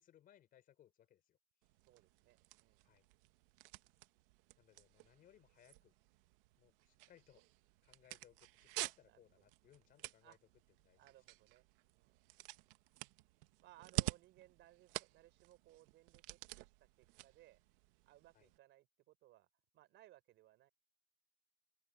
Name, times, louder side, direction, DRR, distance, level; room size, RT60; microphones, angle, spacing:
voice 1, 0.0-1.4 2.8-3.1 4.6-5.9 6.6-7.4 7.8-10.4 10.8-11.1 18.3-18.5, left 11 dB, 25° left, 4.3 m, -67 dB
sound 1, 1.6-18.6, right 19 dB, 55° right, 1.3 m, -49 dB
voice 2, 1.8-2.9 9.0-9.2 10.2-10.4 11.0-11.7 11.9-12.2 13.6-16.7 17.0-17.6 18.0-19.5 19.7-20.7, right 15 dB, 35° right, 4.6 m, -64 dB
open air
supercardioid pair, 175°, 33 cm